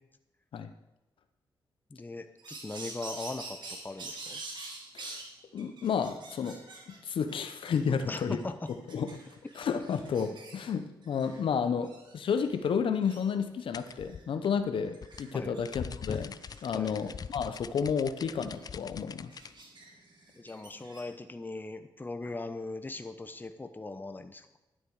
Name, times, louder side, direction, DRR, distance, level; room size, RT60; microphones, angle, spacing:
voice 1, 1.9-4.4 7.9-8.7 15.3-15.5 16.7-16.9 20.4-24.5, left 2 dB, 20° left, 9 dB, 0.9 m, -40 dB
sound 1, 2.4-5.3 5.6-7.0 7.3-10.8 11.0-11.4 11.8-12.7 12.9-13.2 13.7-14.2 14.9-15.6 16.0-21.1, right 2 dB, 55° right, 2.4 m, -47 dB
voice 2, 5.5-6.6 6.9-8.4 8.9-9.2 9.6-16.4 16.6-19.3, left 6 dB, 75° left, 9 dB, 0.8 m, -31 dB
sound 2, 13.7-19.5, left 6 dB, 45° left, 0.4 m, -42 dB
11.0 x 10.0 x 4.8 m, 0.96 s
cardioid pair, 85°, 9 cm